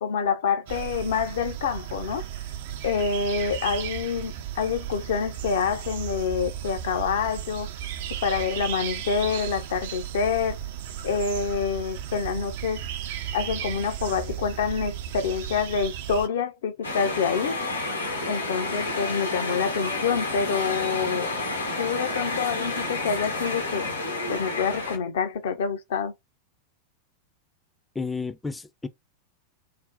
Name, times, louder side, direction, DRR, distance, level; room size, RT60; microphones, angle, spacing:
voice 1, 0.0-2.2 2.8-7.7 8.2-10.6 11.0-12.8 13.3-17.6 18.2-21.3 21.8-23.9 24.3-26.1, left 6 dB, 60° left, 0.5 m, -27 dB
sound 1, 0.7-16.3, right 10 dB, 55° right, 0.4 m, -35 dB
sound 2, 16.8-25.0, left 2 dB, 85° left, 1.0 m, -30 dB
voice 2, 28.0-28.9, left 4 dB, 10° left, 0.4 m, -32 dB
2.6 x 2.0 x 3.8 m
figure-of-eight pair, 90°, 0 cm